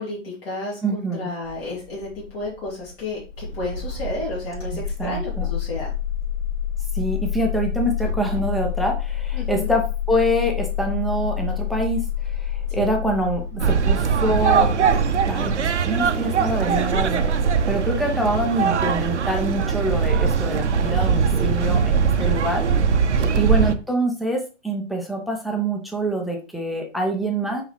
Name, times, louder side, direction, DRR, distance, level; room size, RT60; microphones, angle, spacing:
voice 1, 0.0-5.9 9.3-9.7 12.7-12.9 22.1-22.4 23.1-23.5, left 2 dB, 50° left, -5 dB, 3.0 m, -32 dB
voice 2, 0.8-1.3 5.0-5.5 6.9-14.7 15.3-22.6 23.3-27.6, right 1 dB, ahead, 2 dB, 0.6 m, -25 dB
Engine starting, 1.4-15.6, left 12 dB, 30° left, 3.3 m, -29 dB
sound 1, 3.3-19.9, equal, 75° left, 3.5 m, -36 dB
sound 2, 13.6-23.7, right 6 dB, 65° right, 0.8 m, -21 dB
6.2 x 4.8 x 3.2 m, 0.32 s
figure-of-eight pair, 120°, 37 cm